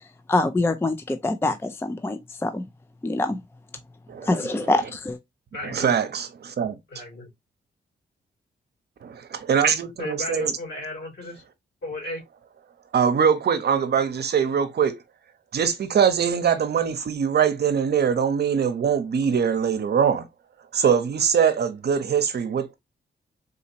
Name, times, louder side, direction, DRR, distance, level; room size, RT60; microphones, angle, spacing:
voice 1, 0.3-2.6 3.0-3.4 4.2-5.2, left 2 dB, 10° left, 0.4 m, -24 dB
voice 2, 4.1-4.6 5.6-6.8 9.0-10.5 12.9-15.0 15.5-20.3 20.7-22.7, right 7 dB, 60° right, 0.7 m, -22 dB
voice 3, 5.5-6.0 6.9-7.3 10.0-11.4 11.8-12.2, left 2 dB, 65° left, 2.7 m, -34 dB
3.9 x 2.8 x 2.7 m
cardioid pair, 105°, 19 cm